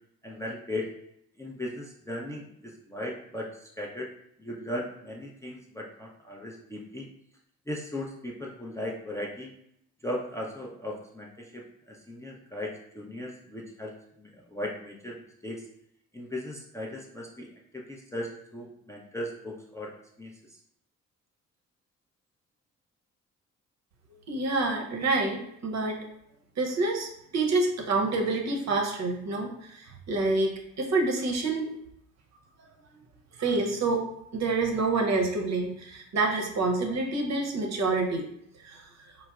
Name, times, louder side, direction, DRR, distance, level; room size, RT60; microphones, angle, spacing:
voice 1, 0.2-0.9 1.4-4.1 4.4-7.1 7.7-9.5 10.0-15.2 15.4-15.7 16.1-17.5 17.7-20.3, left 1 dB, 10° left, -2 dB, 0.5 m, -37 dB
voice 2, 24.3-26.1 26.6-31.7 33.4-34.1 34.3-38.2 38.6-38.8, right 3 dB, 45° right, 1 dB, 0.7 m, -27 dB
4.4 x 2.1 x 2.3 m, 0.75 s
hypercardioid pair, 45°, 39 cm